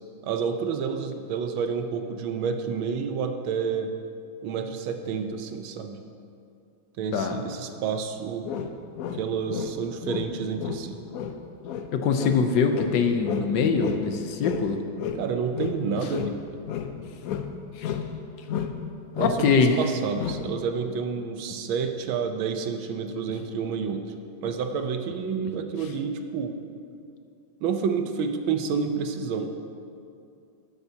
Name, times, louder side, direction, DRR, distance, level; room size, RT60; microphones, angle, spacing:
voice 1, 0.2-3.9 4.4-6.0 7.0-8.5 9.1-11.0 15.2-16.4 19.2-24.0 24.4-26.5 27.6-29.5, right 6 dB, 80° right, 6 dB, 1.5 m, -29 dB
sound 1, 8.4-9.8 10.0-14.1 14.4-16.4 16.7-18.2 18.5-18.9 19.1-19.4 20.2-20.5, left 8 dB, 90° left, 0.7 m, -32 dB
voice 2, 11.9-14.8 17.8-17.9 19.2-19.8, left 5 dB, 70° left, 6 dB, 1.2 m, -23 dB
12.0 x 11.5 x 2.8 m, 2.5 s
omnidirectional pair, 2.2 m